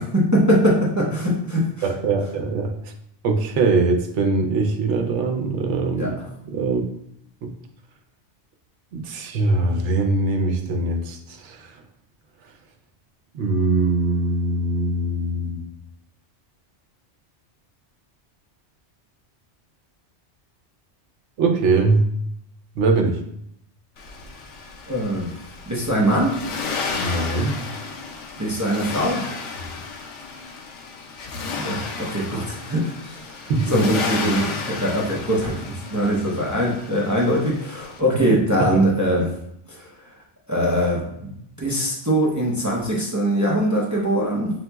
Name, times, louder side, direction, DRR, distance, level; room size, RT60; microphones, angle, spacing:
voice 1, 0.0-1.9 6.0-6.1 24.9-25.3 25.7-26.3 28.4-29.2 31.6-39.3 39.7-39.9 40.5-41.3 41.6-44.5, equal, 20° right, -4 dB, 0.5 m, -22 dB
voice 2, 1.8-2.7 3.2-6.2 6.4-6.8 7.4-7.5 8.9-11.2 11.4-11.7 13.3-15.6 21.4-22.1 22.8-23.2 27.0-27.6 33.5-33.7 38.6-38.8, right 3 dB, 80° right, 4 dB, 0.9 m, -22 dB
Accelerating revving vroom, 24.0-38.0, left 4 dB, 85° left, 0.9 m, -32 dB
5.5 x 2.9 x 2.2 m, 0.74 s
omnidirectional pair, 1.2 m